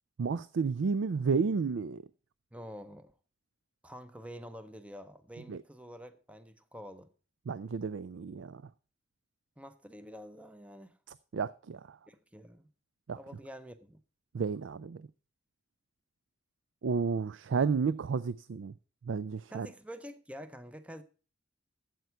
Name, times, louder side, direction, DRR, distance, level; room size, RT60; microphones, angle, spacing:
voice 1, 0.2-2.0 5.5-5.6 7.5-8.6 11.3-12.0 13.1-13.2 14.3-15.0 16.8-18.7 19.1-19.7, right 5 dB, 90° right, 0.4 m, -31 dB
voice 2, 2.5-3.1 3.8-7.1 9.6-11.0 12.1-12.7 13.2-14.0 19.5-21.0, equal, 5° right, 0.6 m, -47 dB
12.5 x 8.0 x 4.6 m
head